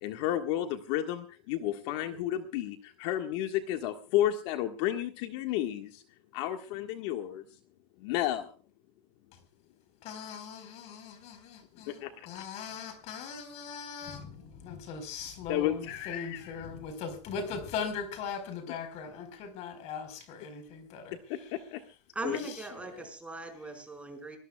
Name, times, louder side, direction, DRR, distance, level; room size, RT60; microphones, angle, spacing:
voice 1, 0.0-6.0 6.3-7.4 8.0-8.5 12.0-12.3 15.5-16.5 21.3-21.8 22.2-22.4, left 12 dB, 60° left, 5 dB, 1.6 m, -32 dB
voice 2, 10.0-21.6 22.4-23.1, left 6 dB, 45° left, 9 dB, 4.6 m, -40 dB
voice 3, 22.1-24.4, right 2 dB, 10° right, 4 dB, 4.9 m, -39 dB
25.5 x 19.0 x 2.3 m, 0.35 s
supercardioid pair, 155°, 16 cm